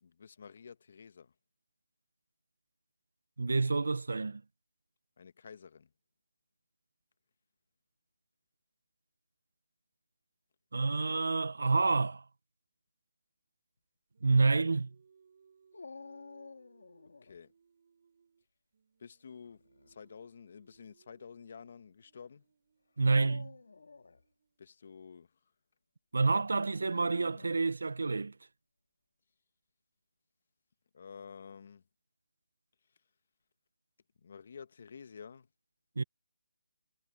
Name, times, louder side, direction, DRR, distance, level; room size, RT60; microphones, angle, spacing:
voice 1, 0.0-1.3 5.2-5.9 17.2-17.5 19.0-19.6 19.9-22.4 24.6-25.3 30.9-31.8 34.2-35.5, left 6 dB, 45° left, 1.5 m, -50 dB
voice 2, 3.4-4.4 10.7-12.2 14.2-14.9 23.0-23.5 26.1-28.3 36.0-36.1, right 3 dB, 80° right, 1.3 m, -28 dB
Singing, 14.1-18.5 18.7-24.7, right 6 dB, 40° right, 7.4 m, -68 dB
Dog, 15.7-17.4 19.5-20.0 20.7-20.8 23.0-24.2 26.7-27.7, left 4 dB, 75° left, 2.6 m, -51 dB
hypercardioid pair, 175°, 0 cm